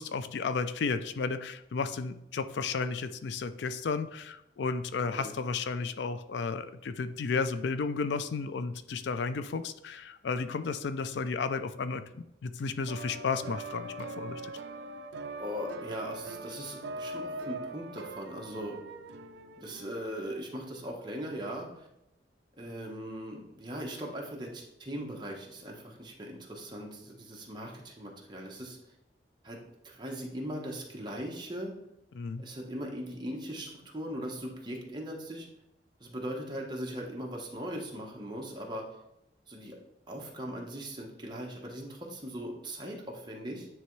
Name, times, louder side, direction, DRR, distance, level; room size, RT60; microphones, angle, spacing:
voice 1, 0.0-14.5 32.2-32.4, left 4 dB, 70° left, 11 dB, 0.4 m, -33 dB
voice 2, 5.0-5.4 15.4-18.8 19.6-21.9 22.6-28.8 29.4-29.6 29.8-31.7 32.4-35.5 36.0-38.8 39.5-39.8 40.1-43.7, equal, 25° right, -1 dB, 1.1 m, -39 dB
sound 1, 12.9-20.5, right 2 dB, 75° right, 0.4 m, -42 dB
9.2 x 3.4 x 3.2 m, 0.85 s
head